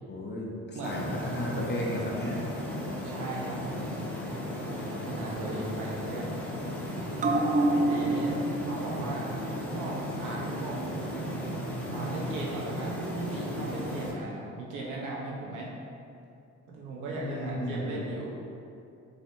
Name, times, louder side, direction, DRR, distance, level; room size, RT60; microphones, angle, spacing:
voice 1, 0.1-2.4 17.2-18.0, left 1 dB, 35° left, -3 dB, 0.8 m, -34 dB
voice 2, 0.7-1.1 3.0-4.0 4.6-6.3 7.5-8.4 8.7-9.3 9.7-10.8 11.9-15.7 16.7-18.4, right 2 dB, 90° right, -3 dB, 1.0 m, -37 dB
sound 1, 0.8-14.1, left 1 dB, 5° left, 1.0 m, -36 dB
sound 2, 7.2-14.1 14.4-14.5, right 2 dB, 25° right, 0.4 m, -32 dB
6.7 x 2.8 x 2.7 m, 2.6 s
cardioid pair, 90°, 30 cm